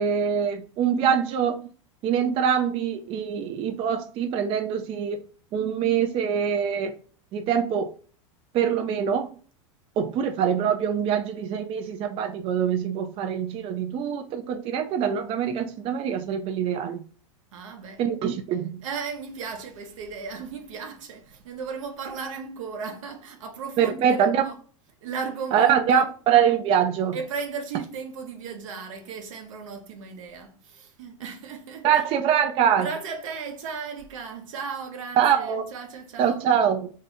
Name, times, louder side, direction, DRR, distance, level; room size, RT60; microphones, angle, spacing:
voice 1, 0.0-1.6 2.0-5.2 5.5-6.9 7.3-7.9 8.5-9.3 10.0-17.0 18.0-18.8 23.8-24.4 25.5-27.2 31.8-32.9 35.2-35.7 36.2-36.9, right 8 dB, 35° right, 0.3 m, -24 dB
voice 2, 17.5-18.0 18.8-24.5 25.0-26.1 27.1-32.0 32.8-36.4, right 5 dB, 75° right, 0.8 m, -36 dB
2.7 x 2.6 x 3.3 m
hypercardioid pair, 110°, 17 cm